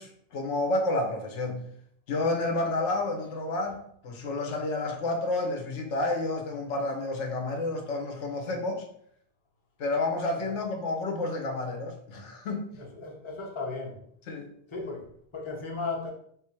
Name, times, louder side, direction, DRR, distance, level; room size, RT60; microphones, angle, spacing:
voice 1, 0.0-1.6 2.1-8.8 9.8-12.7 14.3-14.5, left 2 dB, 90° left, 3 dB, 1.1 m, -30 dB
voice 2, 12.8-14.0 14.7-16.1, left 3 dB, 30° left, 0 dB, 0.8 m, -36 dB
3.8 x 2.5 x 4.4 m, 0.66 s
omnidirectional pair, 1.2 m